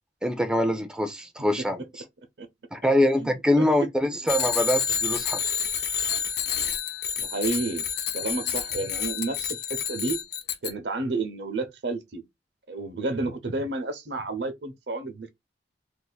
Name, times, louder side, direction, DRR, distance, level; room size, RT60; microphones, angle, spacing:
voice 1, 0.2-1.8 2.7-5.4, left 1 dB, 5° right, 0.4 m, -24 dB
voice 2, 3.2-3.9 7.2-7.8 8.1-9.6 9.9-10.2 10.6-12.2 12.7-15.3, right 3 dB, 70° right, 0.8 m, -31 dB
Bicycle bell, 4.3-10.7, left 8 dB, 65° left, 0.6 m, -29 dB
2.6 x 2.5 x 3.9 m
head